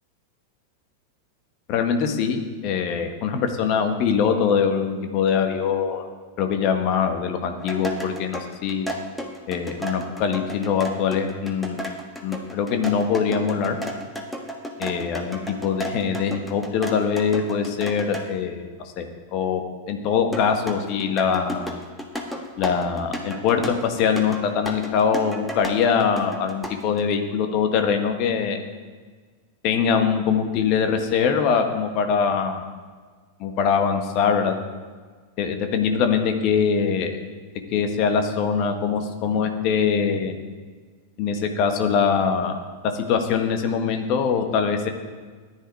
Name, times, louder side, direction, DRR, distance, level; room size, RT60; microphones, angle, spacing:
voice 1, 1.7-6.0 6.4-8.9 9.5-11.9 12.2-13.8 14.8-18.7 19.0-19.1 19.3-19.6 19.9-21.8 22.6-28.6 29.6-32.6 33.4-34.5 35.4-37.2 37.7-40.3 41.2-42.6 42.9-44.9, left 6 dB, 40° left, 5 dB, 1.6 m, -23 dB
sound 1, 7.6-18.3 20.3-27.0, equal, ahead, 1.6 m, -33 dB
14.5 x 10.0 x 4.8 m, 1.5 s
figure-of-eight pair, 90°, 0 cm